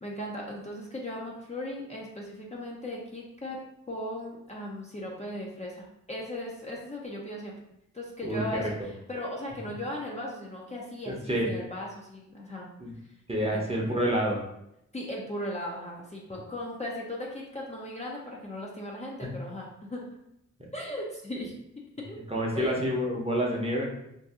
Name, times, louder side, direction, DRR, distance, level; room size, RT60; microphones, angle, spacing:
voice 1, 0.0-3.6 3.9-7.6 7.9-12.7 13.5-13.6 14.9-20.0 20.7-21.5 22.1-22.2 22.5-22.8, left 1 dB, 25° left, -3 dB, 0.6 m, -37 dB
voice 2, 8.2-8.9 11.1-11.5 12.8-12.9 13.3-14.4 22.3-23.8, equal, 20° right, -2 dB, 0.8 m, -28 dB
2.7 x 2.5 x 3.6 m, 0.80 s
cardioid pair, 80°, 29 cm